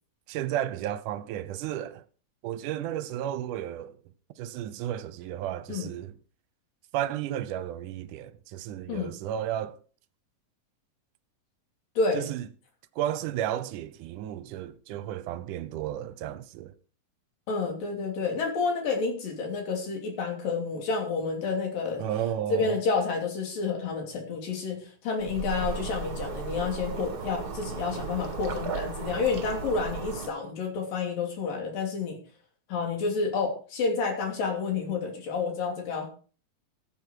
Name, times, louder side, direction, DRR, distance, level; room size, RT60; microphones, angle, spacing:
voice 1, 0.3-2.0 2.4-4.0 4.4-6.2 6.9-9.8 12.1-12.5 13.0-16.7 22.0-22.8, right 11 dB, 75° right, 2.1 m, -33 dB
voice 2, 17.5-22.0 22.5-32.2 32.7-36.1, left 4 dB, 70° left, 4.7 m, -29 dB
sound 1, 25.2-30.3, right 5 dB, 45° right, 1.3 m, -35 dB
14.5 x 8.7 x 4.6 m
omnidirectional pair, 4.1 m